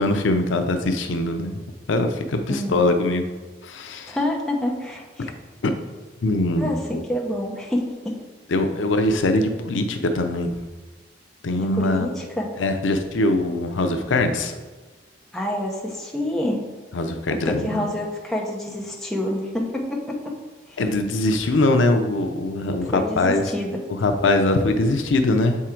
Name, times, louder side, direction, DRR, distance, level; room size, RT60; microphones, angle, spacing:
voice 1, 0.0-1.6 1.9-3.2 3.6-4.2 5.6-5.7 6.2-7.0 8.5-10.5 11.4-12.1 12.6-14.5 16.9-17.9 20.8-23.4 24.0-25.6, left 2 dB, 90° left, 6 dB, 0.6 m, -22 dB
voice 2, 2.5-2.9 4.1-5.3 6.6-8.2 11.6-12.4 15.3-16.6 17.3-20.3 20.7-20.8 22.9-23.8, left 1 dB, ahead, -3 dB, 0.7 m, -27 dB
6.8 x 3.7 x 4.4 m, 1.3 s
head